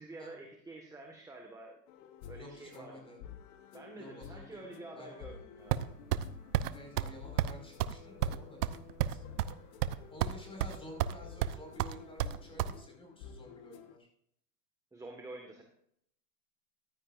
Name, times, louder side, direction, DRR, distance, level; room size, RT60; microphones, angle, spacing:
voice 1, 0.0-1.8 2.3-3.0 3.7-5.9 14.9-15.6, right 2 dB, 5° right, 2 dB, 1.6 m, -48 dB
sound 1, 1.9-14.0, left 8 dB, 50° left, 1.3 m, -51 dB
voice 2, 2.3-3.2 4.0-4.6 4.9-5.4 6.7-9.4 10.1-14.1, equal, 10° left, 1 dB, 5.1 m, -51 dB
sound 2, 5.7-6.3 6.5-6.7 7.0-7.1 7.4-7.5 7.8-7.9 8.2-9.5 9.8-10.3 10.6-11.1 11.4-12.7, right 12 dB, 70° right, 0.8 m, -31 dB
14.5 x 12.0 x 2.6 m, 0.70 s
hypercardioid pair, 125°, 49 cm